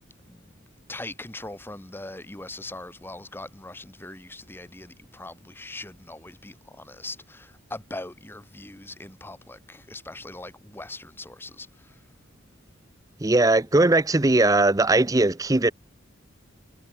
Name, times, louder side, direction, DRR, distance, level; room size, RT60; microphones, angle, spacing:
voice 1, 0.9-11.7, left 2 dB, 10° left, 1.2 m, -40 dB
voice 2, 13.2-15.7, right 2 dB, 15° right, 0.6 m, -19 dB
head